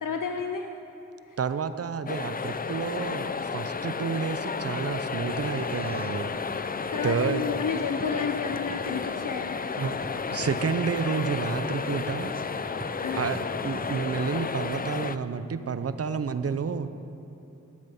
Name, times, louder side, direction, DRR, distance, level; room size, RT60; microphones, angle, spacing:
voice 1, 0.0-0.7 1.3-1.4 6.9-9.6 13.0-13.2, left 5 dB, 75° left, 5 dB, 0.6 m, -31 dB
voice 2, 1.4-6.3 7.0-7.4 9.0-9.2 9.8-10.0 10.3-12.3 13.2-16.9, right 5 dB, 50° right, 12 dB, 0.6 m, -30 dB
sound 1, 2.1-15.2, left 5 dB, 30° left, 0.4 m, -32 dB
sound 2, 5.3-14.5, right 1 dB, 15° right, 0.8 m, -44 dB
14.0 x 7.5 x 5.5 m, 2.8 s
cardioid pair, 55°, 32 cm